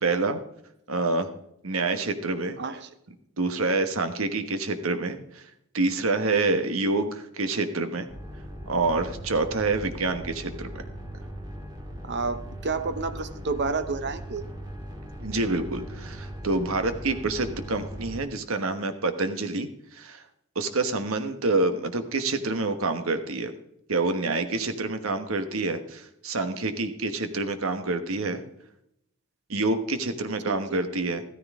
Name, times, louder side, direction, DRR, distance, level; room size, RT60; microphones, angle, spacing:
voice 1, 0.0-0.4 0.9-1.3 1.6-2.6 3.4-5.4 5.7-8.1 8.7-10.8 15.2-20.2 20.5-23.5 23.9-28.4 29.5-31.2, right 3 dB, 70° right, 8 dB, 1.2 m, -27 dB
voice 2, 2.6-2.9 12.0-14.4 30.5-30.6, right 4 dB, 55° right, 11 dB, 0.9 m, -30 dB
sound 1, 8.1-18.2, equal, 20° right, 2.4 m, -39 dB
14.5 x 13.5 x 3.6 m, 0.76 s
head